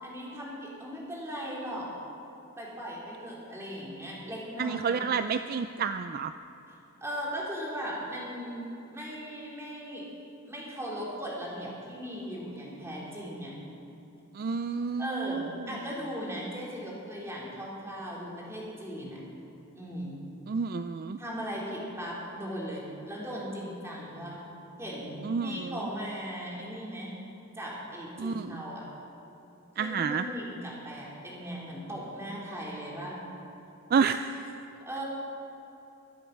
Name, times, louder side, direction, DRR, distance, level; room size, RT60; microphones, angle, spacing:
voice 1, 0.0-1.9 2.6-5.0 7.0-8.6 8.9-10.0 10.5-13.5 15.0-19.2 19.7-20.2 21.2-24.4 24.8-27.1 27.5-28.9 29.7-33.2 34.8-35.0, equal, 15° right, -5 dB, 3.3 m, -38 dB
voice 2, 4.6-6.3 14.3-15.7 20.5-21.2 25.2-25.8 28.2-28.6 29.8-30.3 33.9-34.4, right 5 dB, 45° right, 10 dB, 0.3 m, -30 dB
23.0 x 7.9 x 6.5 m, 2.9 s
head